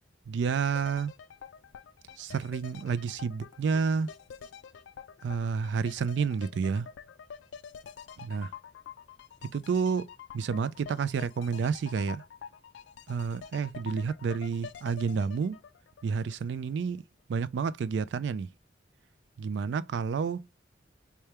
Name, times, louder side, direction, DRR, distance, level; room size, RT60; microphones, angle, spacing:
voice 1, 0.3-1.1 2.2-4.1 5.2-6.9 8.2-8.5 9.5-10.1 10.3-12.2 13.1-15.6 16.0-17.0 17.3-18.5 19.4-20.4, right 5 dB, 70° right, 0.3 m, -30 dB
sound 1, 0.7-16.7 17.0-17.1, left 7 dB, 80° left, 0.3 m, -47 dB
4.3 x 2.3 x 3.2 m
head